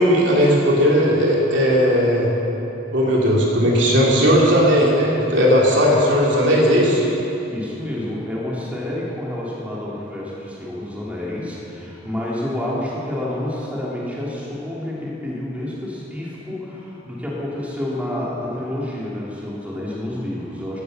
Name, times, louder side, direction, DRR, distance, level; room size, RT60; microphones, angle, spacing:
voice 1, 0.0-2.3 2.9-7.0, equal, 65° right, -4 dB, 3.3 m, -16 dB
voice 2, 7.5-20.8, left 1 dB, 5° right, -6 dB, 3.1 m, -29 dB
16.0 x 12.5 x 6.7 m, 3.0 s
head